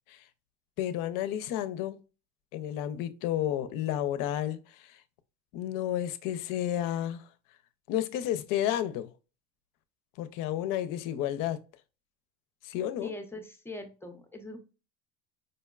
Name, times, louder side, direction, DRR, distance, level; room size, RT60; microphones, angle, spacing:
voice 1, 0.8-2.0 2.5-5.0 5.5-7.2 7.9-9.1 10.2-11.6 12.6-13.1, left 11 dB, 50° left, 0.5 m, -31 dB
voice 2, 13.0-14.6, left 2 dB, 5° left, 0.5 m, -41 dB
5.2 x 2.1 x 2.3 m
supercardioid pair, 105°, 42 cm